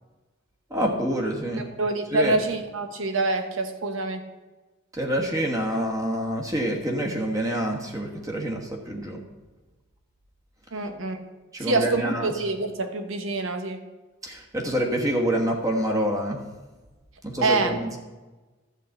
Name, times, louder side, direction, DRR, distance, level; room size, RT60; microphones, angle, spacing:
voice 1, 0.7-1.6 2.1-2.4 4.9-9.2 11.5-12.3 14.2-16.4 17.2-18.0, right 1 dB, 15° right, 0 dB, 1.3 m, -27 dB
voice 2, 1.6-4.2 10.7-11.2 11.6-13.8 17.4-17.7, right 2 dB, 75° right, 6 dB, 1.1 m, -26 dB
12.0 x 4.2 x 7.7 m, 1.2 s
head